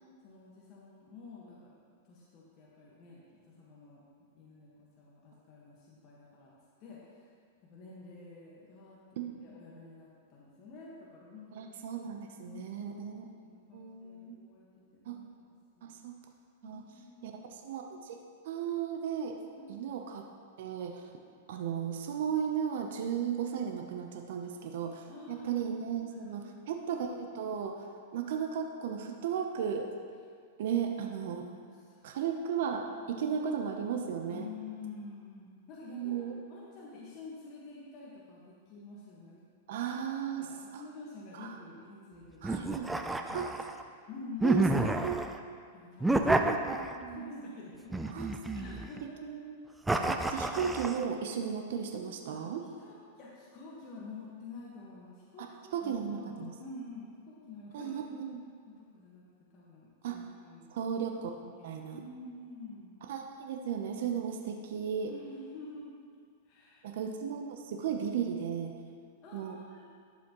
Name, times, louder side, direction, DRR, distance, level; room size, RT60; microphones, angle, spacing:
voice 1, 0.2-1.7 2.0-4.0 4.3-6.5 6.8-7.3 7.6-11.7 12.4-14.7 14.9-16.0 16.6-17.4 19.6-19.7 24.4-24.6 25.1-25.6 26.1-26.7 31.5-32.2 34.3-39.4 39.7-40.0 40.4-43.7 44.1-44.6 45.7-48.0 48.5-49.2 52.3-52.5 52.8-55.5 55.8-58.0 58.7-59.2 59.5-60.7 61.3-62.9 65.1-65.9 66.4-67.0 69.2-69.9, left 3 dB, 40° left, -5 dB, 1.4 m, -49 dB
voice 2, 11.5-13.2 13.7-14.4 15.1-15.2 15.8-16.1 16.6-16.8 17.2-18.2 18.4-19.4 19.7-20.2 20.6-21.0 21.5-29.9 30.6-31.5 32.0-34.5 35.9-36.3 39.7-40.8 41.3-41.5 42.4-42.9 43.3-43.6 44.4-44.6 45.0-45.3 46.3-47.4 48.1-48.3 49.2-49.5 50.1-52.6 55.7-56.5 57.7-58.4 60.0-60.2 60.7-61.3 61.6-62.0 63.1-65.1 66.8-68.7 69.3-69.6, right 7 dB, 65° right, 3 dB, 0.7 m, -35 dB
sound 1, 42.4-43.8 44.4-45.4 46.0-47.2 47.9-49.0 49.9-51.0, right 2 dB, 5° right, 0.4 m, -29 dB
11.0 x 7.0 x 3.0 m, 2.1 s
hypercardioid pair, 140°, 0 cm